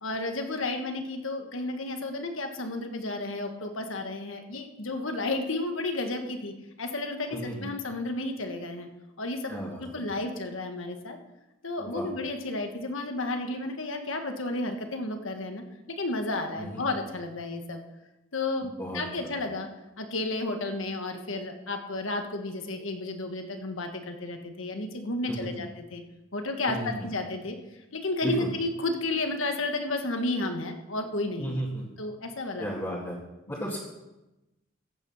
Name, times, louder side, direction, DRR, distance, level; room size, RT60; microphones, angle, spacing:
voice 1, 0.0-8.9 9.2-9.5 9.8-11.2 11.6-17.8 18.3-19.7 20.0-26.0 26.3-27.6 27.9-31.6 32.0-32.7, left 2 dB, 90° left, 5 dB, 1.7 m, -32 dB
voice 2, 7.3-7.7 9.5-9.8 11.8-12.1 16.6-17.0 18.8-19.3 25.3-25.5 26.7-26.9 28.2-28.5 31.4-31.8 32.6-33.2 33.5-33.8, equal, 15° left, -7 dB, 2.0 m, -34 dB
14.5 x 8.7 x 5.6 m, 0.98 s
head